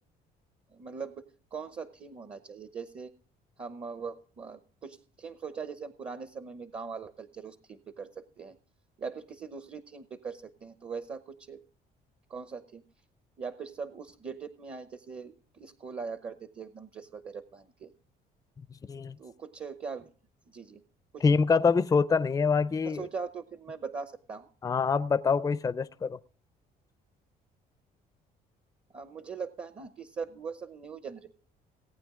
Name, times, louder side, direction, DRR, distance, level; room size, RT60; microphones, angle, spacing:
voice 1, 0.7-1.2 1.5-3.1 3.6-8.6 9.0-11.6 12.3-12.8 13.4-17.9 19.2-20.1 20.5-20.8 21.1-21.2 22.8-24.5 28.9-31.3, right 5 dB, 35° right, 11 dB, 0.8 m, -41 dB
voice 2, 21.2-23.1 24.6-26.2, left 5 dB, 20° left, 14 dB, 0.5 m, -25 dB
18.5 x 8.9 x 3.7 m, 0.43 s
cardioid pair, 110°, 17 cm